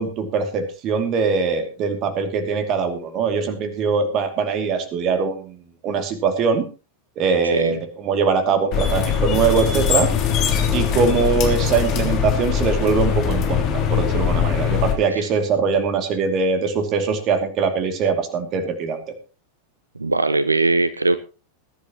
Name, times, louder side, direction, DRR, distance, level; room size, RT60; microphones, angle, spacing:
voice 1, 0.0-6.7 7.2-10.1 10.7-19.0, right 5 dB, 35° right, 8 dB, 2.5 m, -22 dB
sound 1, 8.7-14.9, left 7 dB, 35° left, 3.4 m, -21 dB
voice 2, 20.0-21.2, right 3 dB, 80° right, 14 dB, 0.6 m, -20 dB
21.0 x 10.5 x 3.0 m, 0.33 s
figure-of-eight pair, 90°, 0 cm